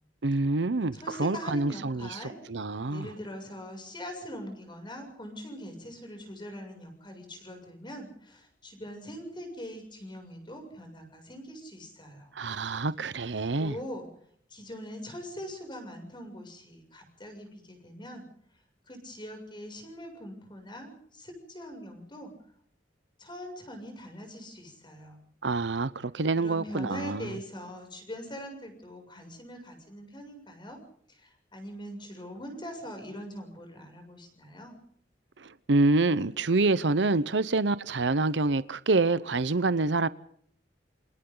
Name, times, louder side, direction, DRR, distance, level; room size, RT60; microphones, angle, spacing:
voice 1, 0.2-3.1 12.3-13.7 25.4-27.4 35.4-40.1, right 3 dB, 80° right, 0.8 m, -27 dB
voice 2, 0.9-2.4 2.9-12.3 13.6-14.1 14.5-18.3 18.9-22.3 23.2-25.2 26.3-30.8 31.1-34.8, equal, 25° left, 7.1 m, -42 dB
28.0 x 26.5 x 3.9 m
head